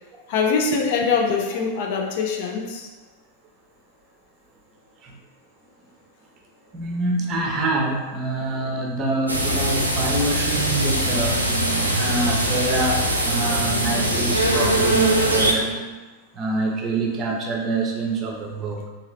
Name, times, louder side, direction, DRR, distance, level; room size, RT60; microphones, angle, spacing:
voice 1, 0.3-2.9, left 5 dB, 50° left, 2 dB, 0.5 m, -23 dB
voice 2, 6.7-16.0 16.3-18.9, right 2 dB, 30° right, 0 dB, 0.7 m, -26 dB
sound 1, 9.3-15.5, right 1 dB, 85° right, 0.5 m, -22 dB
3.7 x 2.9 x 3.1 m, 1.2 s
figure-of-eight pair, 90°, 0 cm